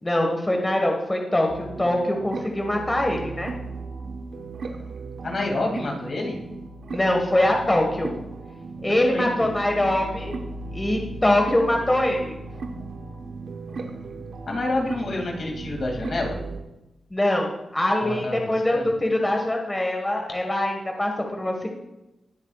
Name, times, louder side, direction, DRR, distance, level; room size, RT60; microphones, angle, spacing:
voice 1, 0.0-1.5 1.8-3.5 6.9-8.1 8.8-10.3 10.7-12.4 17.1-21.7, left 1 dB, 20° left, 2 dB, 1.6 m, -23 dB
sound 1, 1.5-16.6, right 3 dB, 70° right, 1.1 m, -36 dB
voice 2, 5.2-6.4 8.9-9.5 14.5-16.4 18.0-18.9, left 2 dB, 60° left, 0 dB, 2.5 m, -28 dB
19.0 x 7.3 x 2.4 m, 0.95 s
cardioid pair, 70°, 0 cm